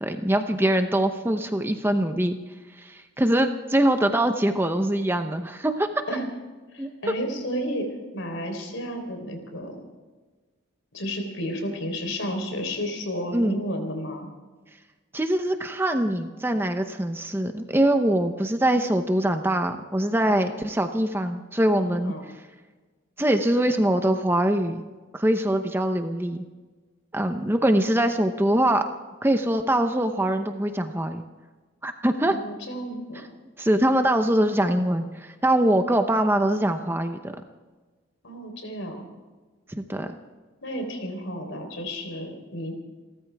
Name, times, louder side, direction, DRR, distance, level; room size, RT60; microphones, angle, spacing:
voice 1, 0.0-2.4 2.8-5.9 6.8-6.9 13.3-13.6 15.1-22.1 23.2-24.8 25.1-26.4 27.1-28.9 29.2-31.2 31.8-32.4 33.6-37.3 39.8-40.1, right 1 dB, 10° right, 7 dB, 0.8 m, -23 dB
voice 2, 6.7-7.9 8.1-9.8 10.9-14.3 20.2-20.4 21.9-22.2 32.2-33.3 38.2-39.0 40.6-42.8, equal, 70° left, 5 dB, 3.9 m, -32 dB
29.0 x 14.0 x 3.5 m, 1.3 s
head